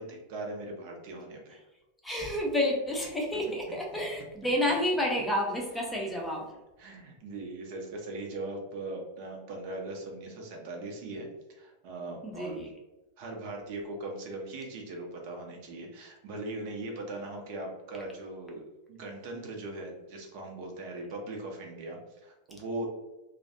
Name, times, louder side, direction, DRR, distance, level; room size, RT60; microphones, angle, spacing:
voice 1, 0.0-1.6 6.8-11.3 11.6-12.6 13.2-22.9, right 2 dB, 45° right, 1 dB, 0.6 m, -40 dB
voice 2, 2.0-6.5 12.2-12.7, left 1 dB, 5° left, -1 dB, 0.6 m, -30 dB
2.4 x 2.1 x 2.5 m, 1.0 s
figure-of-eight pair, 90°, 0 cm